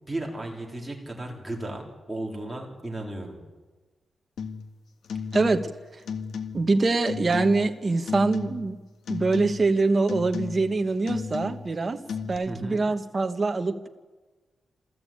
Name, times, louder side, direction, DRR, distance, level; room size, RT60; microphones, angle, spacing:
voice 1, 0.1-3.4 12.4-12.8, right 1 dB, 5° right, -1 dB, 3.8 m, -35 dB
sound 1, 4.4-4.7 5.0-5.7 6.1-6.8 7.1-7.7 8.1-8.8 9.1-9.7 10.1-10.8 11.1-11.7 12.1-12.4, left 6 dB, 85° left, 1.8 m, -34 dB
voice 2, 5.3-5.7 6.5-8.8 9.1-12.0 12.3-13.9, right 3 dB, 25° right, 6 dB, 1.1 m, -24 dB
27.5 x 14.5 x 8.8 m, 1.3 s
wide cardioid pair, 170°, 0 cm